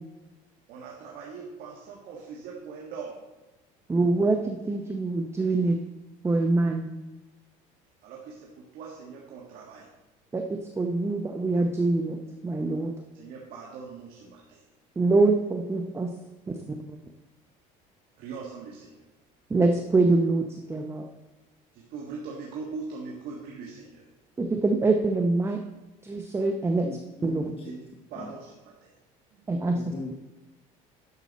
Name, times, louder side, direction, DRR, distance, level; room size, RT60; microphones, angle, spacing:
voice 1, 0.7-3.2 8.0-9.9 13.1-14.6 18.2-19.1 21.7-24.1 27.6-27.8 28.1-28.9 29.3-29.5, right 5 dB, 65° right, -2 dB, 1.7 m, -41 dB
voice 2, 3.9-5.8 6.2-6.9 10.3-12.9 15.0-16.1 16.5-16.6 16.9-17.0 19.5-21.1 24.4-25.6 26.0-26.9 27.2-27.5 29.5-29.9, right 3 dB, 15° right, 4 dB, 0.7 m, -25 dB
voice 3, 26.8-27.7 28.2-28.3 29.7-30.2, left 4 dB, 35° left, 3 dB, 1.1 m, -39 dB
10.5 x 6.8 x 4.1 m, 1.1 s
cardioid pair, 115°, 16 cm